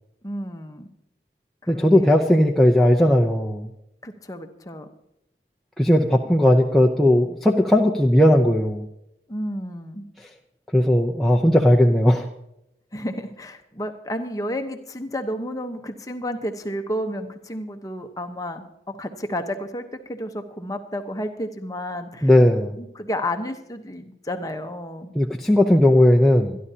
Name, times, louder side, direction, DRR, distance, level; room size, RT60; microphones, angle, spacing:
voice 1, 0.2-0.9 1.6-2.4 4.0-4.9 9.3-10.1 12.9-22.3 22.8-25.1, equal, 20° left, 6 dB, 1.0 m, -31 dB
voice 2, 1.7-3.7 5.8-8.9 10.7-12.3 22.2-22.8 25.2-26.6, left 1 dB, ahead, -1 dB, 0.6 m, -17 dB
25.5 x 11.0 x 2.8 m, 0.82 s
head